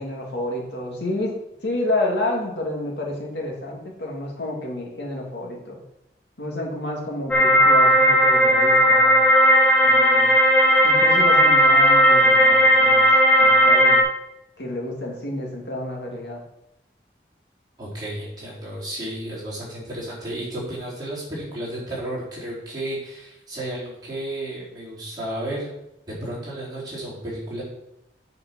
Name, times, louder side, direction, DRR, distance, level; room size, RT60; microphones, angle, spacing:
voice 1, 0.0-1.3 1.6-5.8 6.4-9.2 9.8-10.4 10.8-13.1 13.4-14.0 14.6-16.4, left 1 dB, 75° left, -1 dB, 2.1 m, -29 dB
sound 1, 7.3-14.0, equal, 10° left, 1.1 m, -15 dB
voice 2, 17.8-25.7 26.1-27.6, right 1 dB, 25° right, -8 dB, 4.0 m, -32 dB
8.2 x 5.3 x 6.0 m, 0.84 s
head